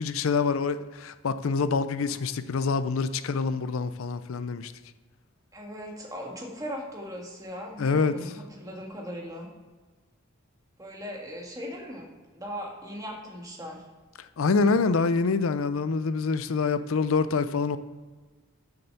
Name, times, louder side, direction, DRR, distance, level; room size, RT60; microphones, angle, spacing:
voice 1, 0.0-4.7 7.8-8.3 14.2-17.8, left 4 dB, 75° left, 0.5 m, -26 dB
voice 2, 5.5-9.5 10.8-12.1 12.3-13.8, equal, 15° right, 1.7 m, -38 dB
7.0 x 6.6 x 6.7 m
head